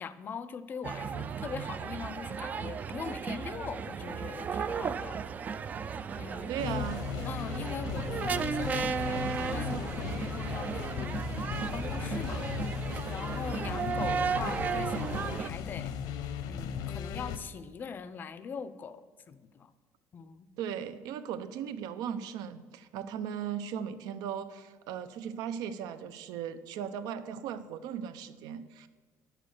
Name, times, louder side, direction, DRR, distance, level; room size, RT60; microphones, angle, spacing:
voice 1, 0.0-5.2 6.1-6.9 7.2-11.2 11.7-12.5 13.1-15.9 16.5-19.7 20.1-20.5, left 6 dB, 30° left, 14 dB, 0.5 m, -41 dB
sound 1, 0.8-15.5, right 6 dB, 25° right, 0.3 m, -35 dB
voice 2, 6.5-7.0 20.6-28.9, right 8 dB, 75° right, 12 dB, 0.8 m, -37 dB
sound 2, 6.6-17.4, left 8 dB, 85° left, 0.9 m, -37 dB
11.0 x 7.5 x 6.6 m, 1.4 s
cardioid pair, 180°, 7 cm